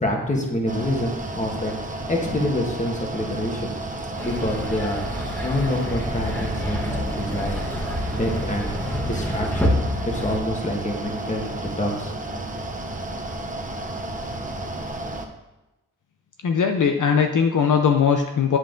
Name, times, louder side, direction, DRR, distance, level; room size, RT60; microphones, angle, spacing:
voice 1, 0.0-1.8 2.1-3.7 4.2-5.0 5.4-7.5 8.1-9.8 10.0-12.1, left 1 dB, 20° left, 0 dB, 1.6 m, -27 dB
Mechanical fan, 0.7-15.3, right 2 dB, 25° right, 0.9 m, -32 dB
sound 1, 4.2-10.4, left 1 dB, 5° left, 1.3 m, -28 dB
voice 2, 16.4-18.6, left 6 dB, 65° left, 4 dB, 0.7 m, -19 dB
8.8 x 7.8 x 3.9 m, 1.0 s
wide cardioid pair, 150°, 33 cm